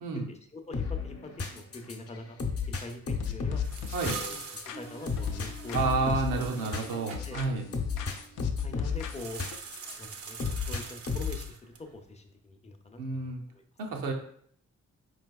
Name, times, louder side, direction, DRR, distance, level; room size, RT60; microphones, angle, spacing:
voice 1, 0.1-2.4 2.7-3.6 4.0-4.2 4.7-6.7 7.2-7.4 8.6-9.4 10.0-13.6 13.9-14.0, left 2 dB, 20° left, 6 dB, 0.6 m, -44 dB
sound 1, 0.7-10.0 10.4-11.5, left 5 dB, 45° left, 0.8 m, -34 dB
sound 2, 3.2-5.8 6.1-7.7 8.0-9.6, left 7 dB, 70° left, 0.5 m, -41 dB
Window Blinds, 3.2-7.2 9.0-11.9, right 5 dB, 45° right, 0.6 m, -44 dB
voice 2, 5.7-7.7 13.0-13.4 13.8-14.1, right 4 dB, 80° right, 2 dB, 0.7 m, -30 dB
4.5 x 3.3 x 2.3 m, 0.64 s
supercardioid pair, 50°, 32 cm